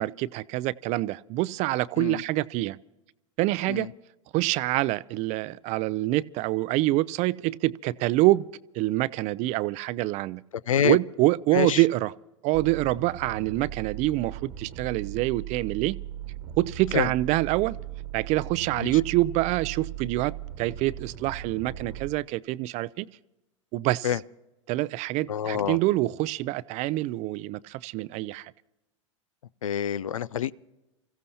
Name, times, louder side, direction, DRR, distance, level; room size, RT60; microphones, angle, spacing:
voice 1, 0.0-2.8 3.4-3.9 4.3-8.5 8.7-10.4 10.8-12.1 12.4-16.0 16.6-17.8 18.1-23.1 23.7-24.1 24.7-28.5, right 18 dB, 45° right, 0.5 m, -26 dB
voice 2, 10.7-11.0 11.5-11.8 16.9-17.1 18.8-18.9 24.0-24.2 25.3-25.8 29.6-30.5, left 9 dB, 90° left, 0.5 m, -26 dB
sound 1, 12.5-22.1, right 11 dB, 60° right, 1.2 m, -38 dB
28.0 x 15.5 x 2.8 m
hypercardioid pair, 95°, 17 cm